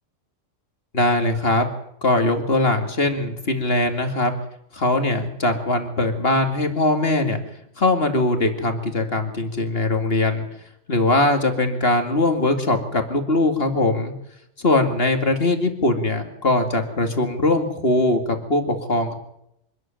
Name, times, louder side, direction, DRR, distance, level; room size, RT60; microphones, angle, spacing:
voice 1, 0.9-1.7 2.0-4.3 4.7-7.4 7.8-10.4 10.9-14.1 14.6-19.1, left 2 dB, 50° left, 6 dB, 2.6 m, -21 dB
25.0 x 12.5 x 9.1 m, 0.77 s
omnidirectional pair, 1.3 m